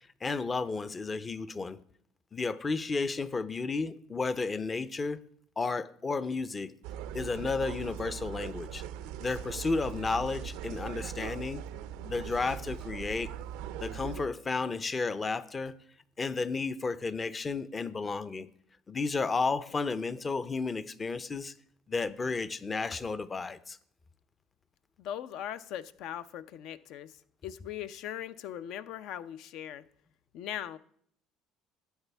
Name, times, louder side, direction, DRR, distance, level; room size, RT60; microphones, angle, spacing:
voice 1, 0.2-1.8 2.3-5.2 5.6-6.7 7.1-8.8 9.2-11.6 12.0-13.3 13.8-15.7 16.2-18.5 18.9-21.5 21.9-23.8, left 4 dB, 25° left, 0.6 m, -32 dB
sound 1, 6.8-14.3, right 9 dB, 80° right, 0.4 m, -40 dB
voice 2, 25.0-29.8 30.3-30.8, left 10 dB, 70° left, 0.5 m, -40 dB
12.5 x 9.0 x 3.4 m
supercardioid pair, 105°, 0 cm